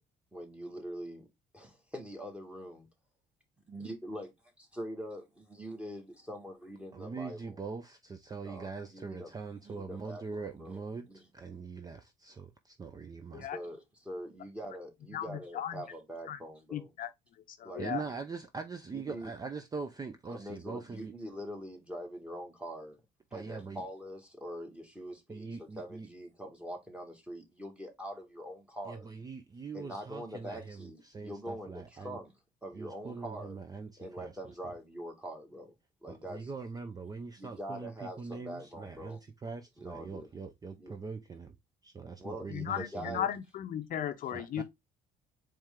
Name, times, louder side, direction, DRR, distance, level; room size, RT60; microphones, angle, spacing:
voice 1, 0.3-1.3 1.5-2.9 3.7-7.6 8.4-9.3 9.6-11.3 13.5-13.8 14.1-16.9 17.6-17.9 18.9-19.3 20.3-23.0 23.3-29.1 29.7-32.3 32.6-33.6 34.0-35.7 36.0-36.5 37.4-39.2 39.8-40.3 40.8-40.9 42.2-43.3, equal, 5° right, 1.7 m, -44 dB
voice 2, 6.9-11.1 11.3-13.5 17.8-21.1 23.3-23.8 25.3-26.1 28.9-32.2 32.7-34.3 34.6-34.7 36.1-41.5 41.8-43.2 44.3-44.6, right 4 dB, 20° right, 0.5 m, -42 dB
voice 3, 15.1-15.8 16.3-16.4 16.7-17.1 17.5-18.0 42.5-44.6, left 10 dB, 55° left, 0.6 m, -36 dB
4.4 x 3.3 x 3.6 m
cardioid pair, 110°, 17 cm